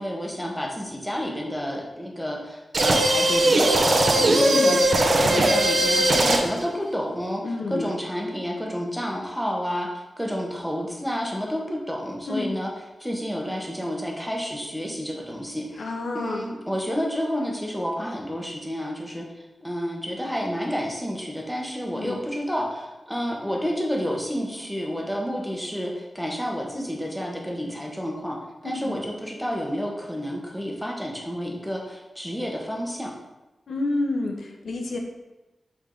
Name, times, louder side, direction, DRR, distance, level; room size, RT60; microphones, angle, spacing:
voice 1, 0.0-4.8 5.2-9.9 10.2-12.7 13.0-28.4 28.6-33.1, equal, ahead, -1 dB, 1.1 m, -30 dB
sound 1, 2.7-6.6, right 1 dB, 55° right, 0.7 m, -19 dB
voice 2, 4.1-4.8 7.4-7.9 12.3-12.5 15.7-16.5 21.9-22.2 28.8-29.0 33.7-35.0, left 2 dB, 85° left, 2 dB, 1.0 m, -29 dB
8.2 x 3.6 x 3.9 m, 1.0 s
wide cardioid pair, 135°, 0 cm